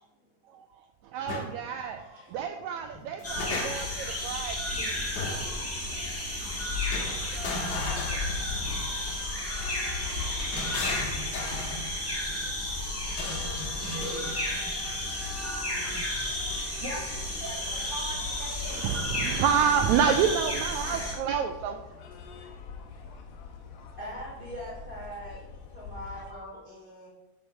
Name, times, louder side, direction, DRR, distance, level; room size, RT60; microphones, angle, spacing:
voice 1, 1.1-2.0 2.3-4.9 7.3-7.9 8.6-8.7 18.7-21.8, right 7 dB, 85° right, 6 dB, 1.6 m, -29 dB
sound 1, 1.3-1.5 2.9-4.0 5.2-5.6 6.9-8.8 10.1-11.9 13.1-14.4, left 3 dB, 65° left, 2.2 m, -36 dB
voice 2, 2.0-2.4 11.9-12.0 12.7-12.9 20.8-21.1 24.0-25.4 25.7-27.1, equal, 25° left, -4 dB, 1.2 m, -46 dB
sound 2, 3.2-21.1, left 1 dB, 10° left, 0.8 m, -33 dB
sound 3, 7.5-26.3, left 5 dB, 85° left, 1.2 m, -42 dB
voice 3, 16.8-18.8, right 2 dB, 65° right, -1 dB, 1.1 m, -41 dB
6.7 x 5.8 x 5.3 m, 1.0 s
omnidirectional pair, 3.7 m